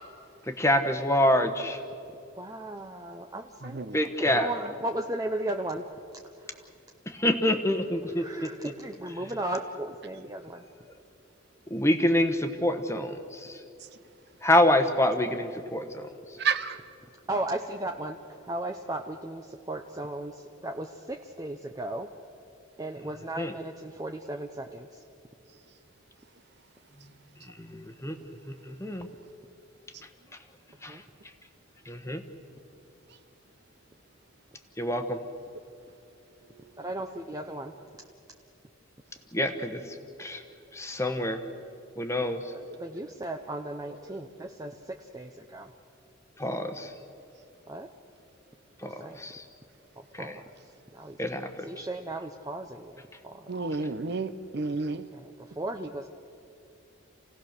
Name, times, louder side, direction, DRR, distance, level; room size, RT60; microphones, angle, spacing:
voice 1, 0.5-1.8 3.9-4.5 7.1-8.5 11.7-13.6 14.4-16.1 23.4-23.5 27.5-29.1 30.8-31.0 31.9-32.2 34.8-35.2 39.3-40.4 40.7-41.4 42.0-42.5 46.4-46.9 48.8-49.4 50.1-50.4 51.2-51.7, left 1 dB, 15° left, 7 dB, 1.1 m, -27 dB
voice 2, 2.3-3.8 4.2-5.9 6.4-6.7 8.1-10.6 17.3-22.1 22.8-25.0 30.9-31.0 36.8-37.7 42.5-45.7 47.7-47.9 48.8-49.3 50.1-50.5 50.9-51.2 51.6-53.6 54.9-56.1, right 1 dB, 15° right, 3 dB, 0.6 m, -36 dB
voice 3, 3.6-4.0 4.2-4.4 16.4-16.8 42.4-42.5 44.1-44.2 53.5-55.0, right 4 dB, 50° right, 11 dB, 0.7 m, -31 dB
28.5 x 17.0 x 6.7 m, 2.7 s
head